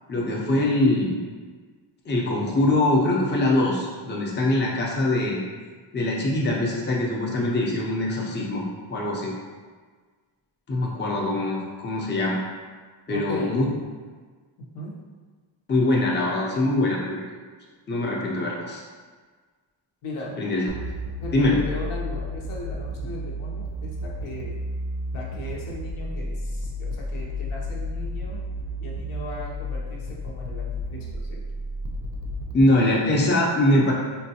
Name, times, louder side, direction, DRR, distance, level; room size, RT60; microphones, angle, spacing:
voice 1, 0.1-1.2 2.0-5.4 5.9-8.6 8.9-9.3 10.7-12.4 13.1-13.7 15.7-17.2 17.9-18.8 20.4-20.6 21.3-21.6 32.5-33.9, left 1 dB, 25° left, -3 dB, 0.5 m, -23 dB
voice 2, 13.1-13.6 14.6-15.0 20.0-20.3 21.2-24.5 25.1-28.4 28.8-31.4, left 1 dB, 85° left, -3 dB, 0.8 m, -37 dB
sound 1, 20.7-32.6, left 1 dB, 45° right, 0.5 m, -32 dB
3.7 x 2.2 x 2.8 m, 1.5 s
wide cardioid pair, 105°, 49 cm